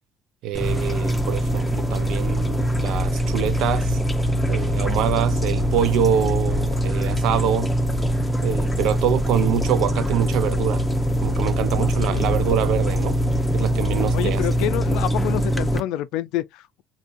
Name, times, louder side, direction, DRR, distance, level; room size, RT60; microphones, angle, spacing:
voice 1, 0.4-4.0 4.5-7.7 8.4-10.8 11.2-13.2 13.5-14.4, right 10 dB, 70° right, 0.4 m, -25 dB
sound 1, 0.5-15.8, equal, 5° left, 0.6 m, -23 dB
voice 2, 14.1-16.8, left 13 dB, 75° left, 0.3 m, -28 dB
3.6 x 2.7 x 2.5 m
supercardioid pair, 75°, 0 cm